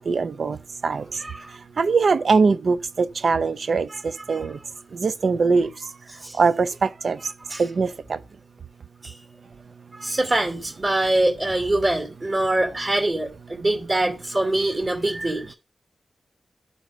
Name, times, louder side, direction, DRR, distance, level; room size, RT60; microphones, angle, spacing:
voice 1, 0.1-0.6 0.8-1.1 1.8-4.6 4.9-5.7 6.4-7.2 7.6-8.2, right 4 dB, 65° right, 0.5 m, -22 dB
voice 2, 0.9-1.5 3.9-4.0 4.3-4.4 6.2-6.4 7.5-7.6 9.0-9.1 9.9-15.5, right 1 dB, 40° right, 2.5 m, -24 dB
11.0 x 3.9 x 5.0 m
cardioid pair, 60°, 0 cm